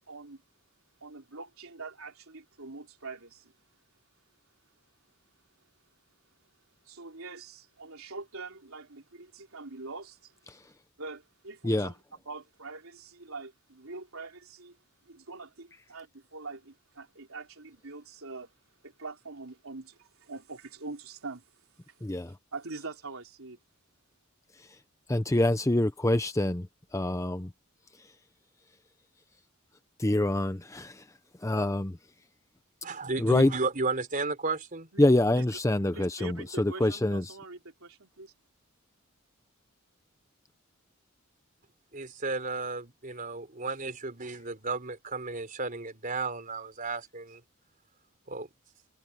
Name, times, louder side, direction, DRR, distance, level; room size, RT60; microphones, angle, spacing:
voice 1, 0.1-0.4 1.0-3.5 6.9-10.3 11.0-11.9 12.3-14.8 15.1-18.5 18.8-21.4 22.5-23.6 34.9-35.0 35.3-35.4 35.9-38.3, right 3 dB, 80° right, 3.6 m, -44 dB
voice 2, 22.0-22.3 25.1-26.7 26.9-27.5 30.0-31.0 31.4-32.0 33.2-33.5 35.0-37.4, left 1 dB, 15° left, 0.7 m, -26 dB
voice 3, 32.8-34.9 41.9-47.4 48.3-48.5, right 3 dB, 40° right, 4.1 m, -33 dB
head